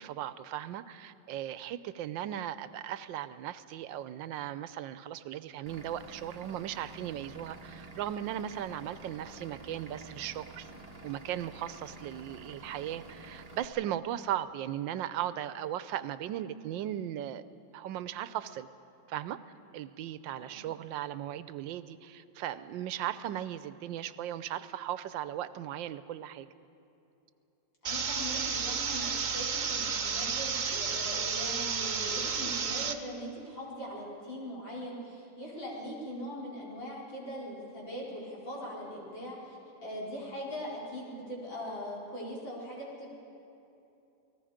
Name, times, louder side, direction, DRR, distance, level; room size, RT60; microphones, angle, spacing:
voice 1, 0.0-10.7 11.0-17.4 17.7-18.7 19.1-19.4 19.7-26.5, right 11 dB, 85° right, 14 dB, 1.4 m, -37 dB
Vehicle / Engine, 5.7-13.7, right 2 dB, 25° right, 1.0 m, -49 dB
voice 2, 27.8-43.1, equal, 85° left, -6 dB, 5.4 m, -41 dB
sound 1, 27.8-32.9, right 6 dB, 50° right, 0.5 m, -32 dB
28.5 x 19.0 x 5.1 m, 2.9 s
omnidirectional pair, 2.0 m